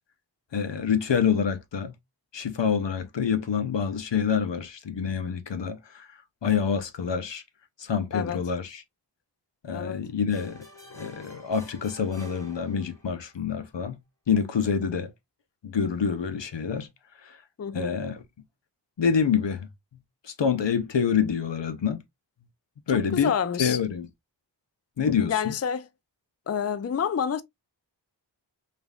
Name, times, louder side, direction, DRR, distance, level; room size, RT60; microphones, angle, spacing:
voice 1, 0.5-1.9 2.3-6.1 6.4-7.4 7.8-8.8 9.6-10.6 10.9-14.0 14.3-15.1 15.6-16.9 17.2-17.3 17.7-18.2 19.0-19.7 20.2-22.0 22.9-23.3 23.6-24.1 25.0-25.5, left 7 dB, 75° left, 0.8 m, -26 dB
sound 1, 10.3-13.3, left 3 dB, 5° left, 1.8 m, -47 dB
voice 2, 17.6-18.0 23.1-23.8 25.3-25.9 26.5-27.4, left 7 dB, 35° left, 0.4 m, -28 dB
5.1 x 2.5 x 2.4 m
wide cardioid pair, 60°, 44 cm